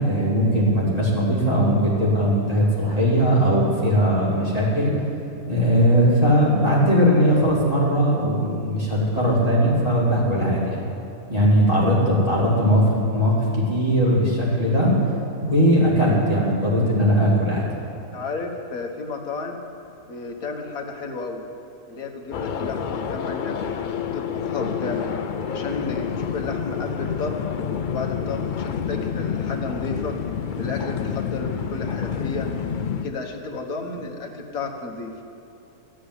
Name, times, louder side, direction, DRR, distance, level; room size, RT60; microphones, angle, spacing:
voice 1, 0.0-4.9 5.5-10.8 11.3-12.9 13.1-14.9 15.4-17.6, equal, 25° right, -7 dB, 3.4 m, -19 dB
voice 2, 18.1-19.6 20.1-21.4 21.9-23.6 24.1-25.1 25.5-27.4 27.9-30.2 30.5-32.5 32.9-35.1, left 3 dB, 65° left, 2 dB, 1.8 m, -32 dB
sound 1, 22.3-33.0, left 7 dB, 85° left, 0.4 m, -28 dB
13.0 x 8.5 x 9.8 m, 2.6 s
omnidirectional pair, 1.7 m